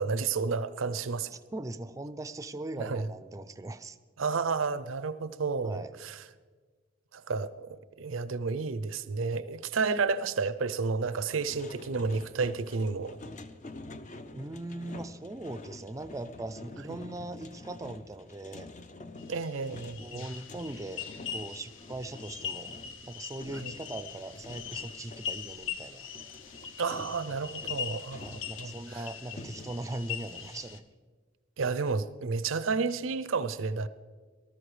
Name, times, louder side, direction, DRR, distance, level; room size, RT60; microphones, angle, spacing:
voice 1, 0.0-1.3 2.8-3.1 4.2-6.2 7.1-13.2 16.9-17.0 19.3-20.2 23.6-23.7 26.8-29.0 31.6-33.9, right 4 dB, 85° right, 0.6 m, -31 dB
voice 2, 1.3-4.0 5.6-5.9 14.3-18.7 20.0-26.1 28.2-30.8, right 2 dB, 15° right, 0.4 m, -40 dB
sound 1, 11.3-25.4 26.1-29.7, left 2 dB, 40° left, 0.6 m, -48 dB
sound 2, 19.2-30.8, left 8 dB, 75° left, 0.8 m, -41 dB
19.0 x 13.0 x 3.3 m
head